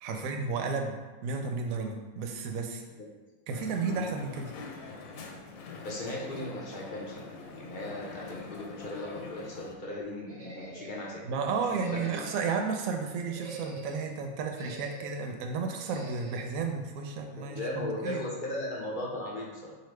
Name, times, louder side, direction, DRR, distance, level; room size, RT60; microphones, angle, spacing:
voice 1, 0.0-2.8 3.5-4.5 11.2-18.2, right 4 dB, 75° right, 3 dB, 1.0 m, -33 dB
Crowd, 3.5-9.8, left 4 dB, 75° left, 1.0 m, -44 dB
voice 2, 5.8-11.2 11.9-12.5 17.3-19.8, left 1 dB, 55° left, -2 dB, 0.5 m, -37 dB
sound 1, 10.3-11.2 11.7-12.7 13.2-14.1 14.5-15.3 15.8-16.5, right 2 dB, 40° right, 0.6 m, -46 dB
4.1 x 2.9 x 3.2 m, 1.2 s
omnidirectional pair, 1.5 m